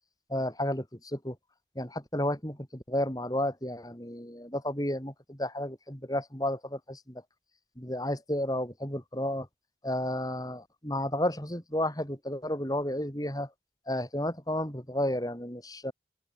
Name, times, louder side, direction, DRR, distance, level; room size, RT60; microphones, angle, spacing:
voice 1, 0.3-1.4 1.8-7.2 7.8-9.5 9.8-13.5 13.9-15.9, left 1 dB, 20° left, 6.7 m, -32 dB
open air
head